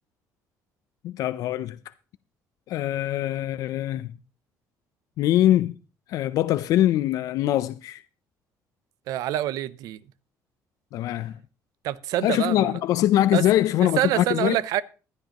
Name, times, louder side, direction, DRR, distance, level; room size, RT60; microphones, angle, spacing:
voice 1, 1.0-1.8 2.7-4.1 5.2-5.7 6.1-8.0 10.9-11.4 12.2-14.6, left 13 dB, 70° left, 0.5 m, -23 dB
voice 2, 9.1-10.0 11.8-12.8 13.3-13.4 13.8-14.8, right 13 dB, 80° right, 0.6 m, -26 dB
15.5 x 11.5 x 3.0 m
cardioid pair, 150°, 6 cm